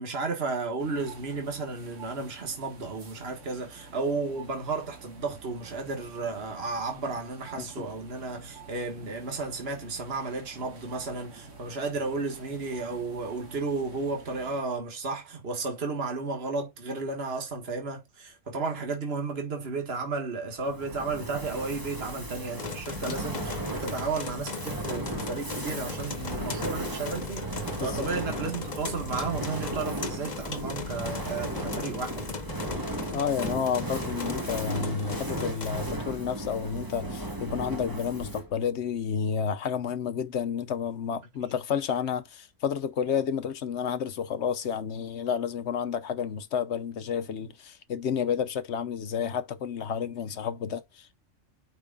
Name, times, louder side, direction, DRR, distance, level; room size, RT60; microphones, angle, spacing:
voice 1, 0.0-32.4, right 3 dB, 50° right, 1.9 m, -33 dB
sound 1, 0.8-14.6, right 4 dB, 70° right, 2.1 m, -48 dB
Fire, 20.6-38.6, right 1 dB, 15° right, 1.3 m, -36 dB
sound 2, 22.6-35.7, left 4 dB, 35° left, 1.0 m, -38 dB
voice 2, 33.1-51.2, left 7 dB, 65° left, 1.0 m, -30 dB
8.9 x 5.4 x 2.4 m
omnidirectional pair, 1.3 m